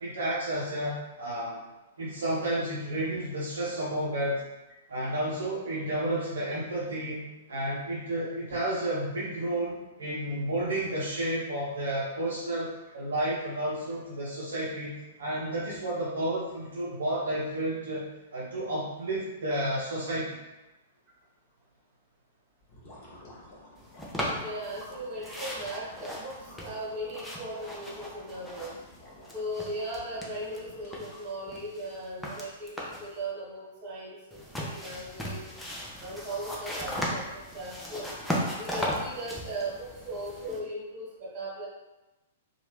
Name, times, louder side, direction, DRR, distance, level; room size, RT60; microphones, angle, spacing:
voice 1, 0.0-1.6 2.0-4.4 4.9-7.2 7.5-14.9 15.2-18.0 18.3-20.4, right 1 dB, 65° right, -6 dB, 0.6 m, -31 dB
sound 1, 22.6-31.6, left 1 dB, 35° left, 0.9 m, -51 dB
sound 2, 24.0-24.9 25.2-29.0 29.2-30.6 30.9-33.1 34.3-40.6, equal, 5° left, 0.5 m, -36 dB
voice 2, 24.4-28.8 29.3-35.5 36.0-38.1 38.6-41.7, right 1 dB, 30° right, -6 dB, 1.4 m, -38 dB
2.9 x 2.3 x 3.1 m, 1.0 s
figure-of-eight pair, 110°, 0 cm